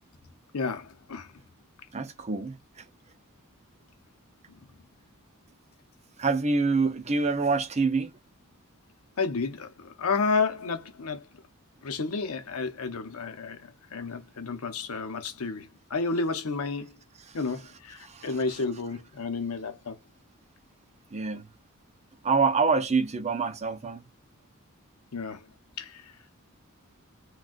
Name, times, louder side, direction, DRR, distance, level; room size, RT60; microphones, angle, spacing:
voice 1, 0.5-1.3 4.5-4.7 9.2-11.3 11.8-16.9 17.3-20.0 25.1-25.5 25.8-26.1, left 4 dB, 80° left, 0.7 m, -31 dB
voice 2, 1.9-2.6 6.2-8.1 18.0-18.3 21.1-21.4 22.2-24.0, right 4 dB, 30° right, 0.5 m, -26 dB
3.8 x 2.2 x 2.5 m
head